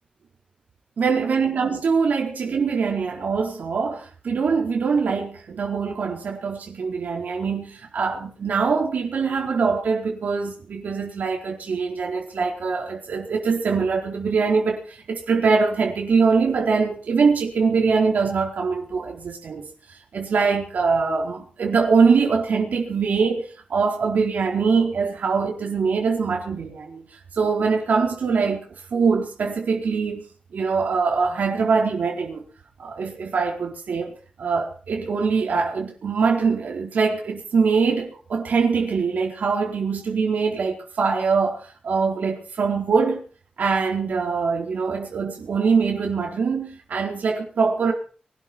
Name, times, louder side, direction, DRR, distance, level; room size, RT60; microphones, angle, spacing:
voice 1, 1.0-19.6 19.9-27.0 27.3-28.6 28.9-30.2 30.5-32.4 32.8-34.1 34.4-43.2 43.6-47.9, right 5 dB, 75° right, 4.4 m, -23 dB
23.5 x 12.5 x 4.5 m
wide cardioid pair, 165°, 3 cm